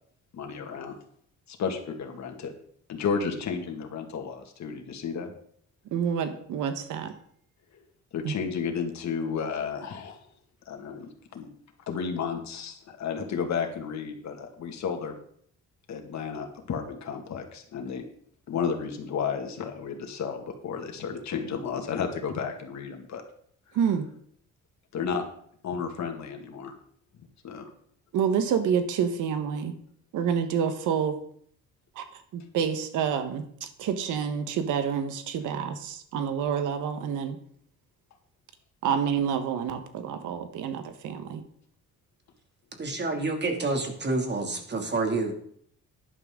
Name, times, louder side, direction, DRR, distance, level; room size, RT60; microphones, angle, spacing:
voice 1, 0.3-0.9 1.5-2.5 2.9-5.3 8.1-10.2 10.7-11.5 11.9-15.1 15.9-18.0 18.5-23.2 24.9-25.2 25.6-26.7 27.4-27.7, left 6 dB, 65° left, 4 dB, 2.2 m, -32 dB
voice 2, 5.9-7.1 8.2-8.3 23.7-24.0 28.1-29.7 30.1-31.2 31.9-37.4 38.8-41.4, right 7 dB, 85° right, 9 dB, 1.4 m, -28 dB
voice 3, 42.8-45.3, right 3 dB, 35° right, 3 dB, 2.6 m, -28 dB
11.5 x 11.0 x 3.8 m, 0.64 s
cardioid pair, 90°, 30 cm